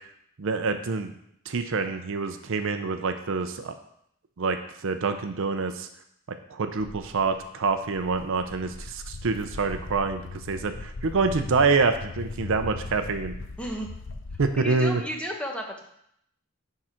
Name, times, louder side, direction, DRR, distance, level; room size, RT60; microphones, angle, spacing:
voice 1, 0.4-1.1 1.5-3.7 4.4-5.9 6.5-13.3 14.4-15.0, right 4 dB, 65° right, 8 dB, 0.6 m, -26 dB
Walk footsteps, 6.8-14.5, left 3 dB, 65° left, 0.6 m, -39 dB
voice 2, 13.6-13.9 14.5-15.8, equal, 5° left, 1 dB, 1.0 m, -33 dB
10.5 x 3.8 x 4.4 m, 0.73 s
head